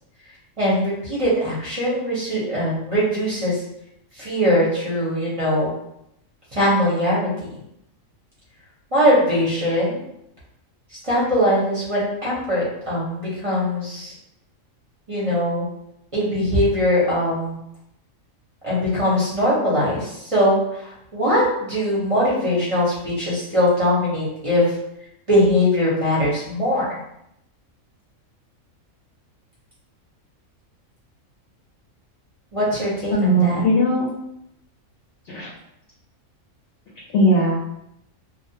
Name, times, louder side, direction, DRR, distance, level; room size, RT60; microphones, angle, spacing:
voice 1, 0.6-3.6 4.1-5.7 6.5-7.5 8.9-10.0 11.0-14.1 15.1-15.7 16.1-17.6 18.6-24.8 25.3-26.8 32.5-33.6, equal, 35° right, -7 dB, 0.6 m, -21 dB
voice 2, 33.1-34.1 35.3-35.5 37.1-37.6, right 1 dB, 65° left, -6 dB, 0.8 m, -18 dB
2.3 x 2.0 x 2.7 m, 0.80 s
omnidirectional pair, 1.4 m